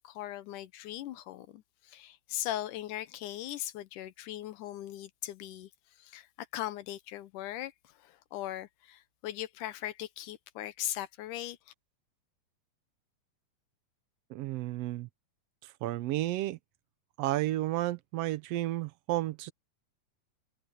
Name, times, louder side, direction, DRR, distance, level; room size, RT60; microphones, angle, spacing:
voice 1, 0.0-5.7 6.0-11.7, left 13 dB, 80° left, 2.4 m, -39 dB
voice 2, 14.3-15.1 15.8-16.6 17.2-19.5, right 15 dB, 80° right, 1.5 m, -32 dB
omnidirectional pair, 3.6 m